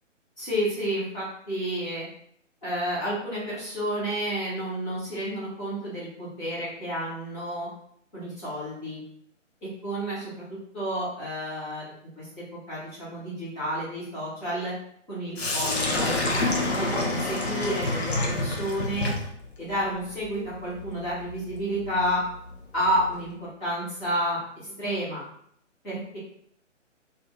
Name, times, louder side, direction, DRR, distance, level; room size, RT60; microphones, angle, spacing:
voice 1, 0.4-2.1 2.6-7.7 8.1-9.0 9.8-10.4 10.7-11.9 12.2-14.7 15.1-16.2 16.5-19.1 19.6-22.2 22.7-23.3 23.6-25.3 25.8-26.2, equal, 5° left, -12 dB, 0.6 m, -30 dB
Sink (filling or washing), 15.4-23.3, left 2 dB, 55° left, 0.8 m, -29 dB
2.6 x 2.5 x 3.4 m, 0.67 s
figure-of-eight pair, 140°, 38 cm